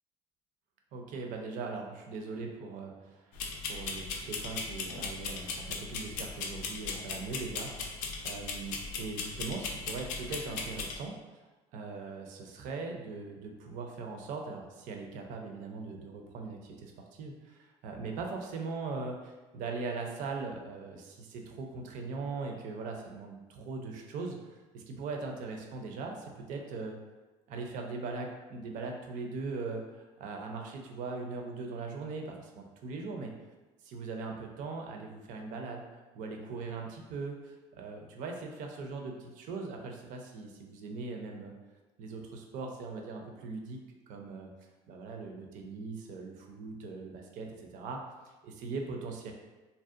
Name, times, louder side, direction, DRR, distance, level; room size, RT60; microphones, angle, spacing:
voice 1, 0.9-3.3 3.6-11.1 11.7-27.0 27.5-33.3 33.8-35.8 36.1-41.5 42.0-43.8 44.1-44.5 44.9-48.0 48.4-49.3, right 4 dB, 65° right, 2 dB, 0.5 m, -40 dB
sound 1, 3.4-11.0, left 4 dB, 75° left, 0.4 m, -38 dB
2.6 x 2.0 x 2.4 m, 1.2 s
supercardioid pair, 90°, 14 cm